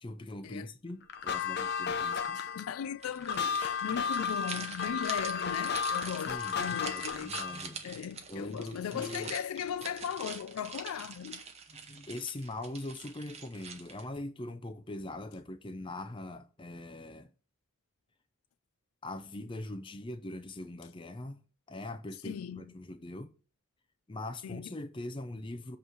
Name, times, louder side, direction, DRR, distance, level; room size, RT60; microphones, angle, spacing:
voice 1, 0.0-2.4 6.3-7.8 8.3-9.3 11.7-17.3 19.0-21.4 21.7-23.3 24.1-25.8, left 2 dB, 25° left, 0.5 m, -42 dB
sound 1, 1.1-7.7, left 6 dB, 50° left, 0.8 m, -33 dB
voice 2, 2.3-7.3 7.8-11.4 22.2-22.7 24.4-24.7, left 8 dB, 90° left, 0.3 m, -38 dB
sound 2, 3.0-14.2, right 5 dB, 30° right, 0.8 m, -45 dB
7.8 x 3.2 x 6.1 m
head